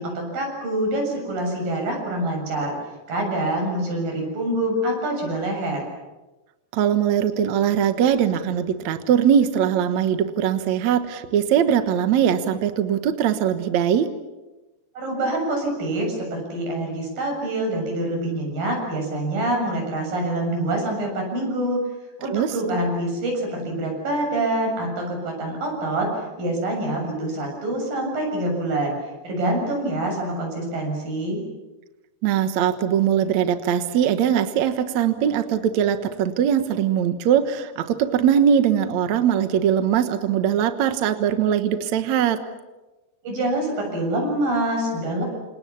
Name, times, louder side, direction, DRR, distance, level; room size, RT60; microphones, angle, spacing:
voice 1, 0.0-2.8 3.1-5.8 15.0-21.8 22.2-26.1 26.4-29.0 29.2-31.4 43.2-45.2, right 1 dB, 50° right, 2 dB, 8.8 m, -25 dB
voice 2, 6.7-14.1 22.3-22.5 32.2-42.4, right 9 dB, 65° right, 9 dB, 1.8 m, -21 dB
28.5 x 28.0 x 7.1 m, 1.1 s
omnidirectional pair, 5.1 m